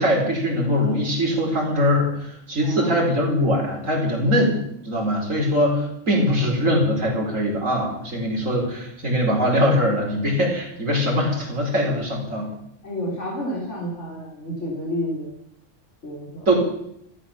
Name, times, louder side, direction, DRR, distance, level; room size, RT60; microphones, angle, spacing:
voice 1, 0.0-4.6 4.8-12.5 16.5-16.6, equal, 90° right, -1 dB, 5.1 m, -22 dB
voice 2, 2.6-3.1 12.8-15.3 16.0-16.5, equal, 65° left, -2 dB, 3.9 m, -30 dB
14.5 x 14.0 x 7.2 m, 0.74 s
omnidirectional pair, 1.3 m